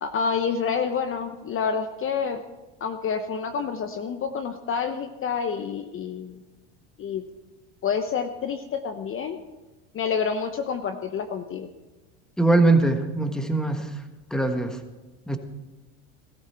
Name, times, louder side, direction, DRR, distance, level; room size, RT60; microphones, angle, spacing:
voice 1, 0.0-2.4 2.8-6.4 7.0-7.2 7.8-9.4 9.9-11.7, left 6 dB, 35° left, 8 dB, 0.9 m, -28 dB
voice 2, 12.4-13.9 14.3-14.8 15.3-15.4, right 2 dB, ahead, 6 dB, 1.4 m, -21 dB
16.5 x 14.0 x 4.4 m, 1.1 s
supercardioid pair, 105°, 37 cm